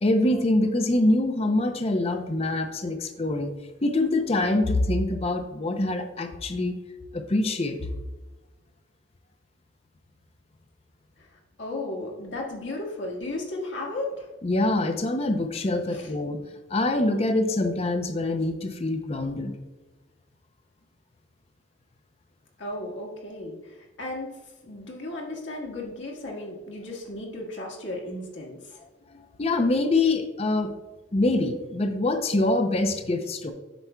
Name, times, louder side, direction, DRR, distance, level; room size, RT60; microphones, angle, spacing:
voice 1, 0.0-3.5 3.8-6.7 7.1-7.9 14.4-16.4 16.7-19.5 29.1-30.7 31.1-33.5, left 2 dB, 30° left, 7 dB, 0.5 m, -25 dB
voice 2, 11.6-14.3 15.9-16.1 22.6-24.4 24.6-28.8, left 2 dB, 65° left, -2 dB, 1.5 m, -35 dB
8.0 x 5.9 x 2.2 m, 1.2 s
head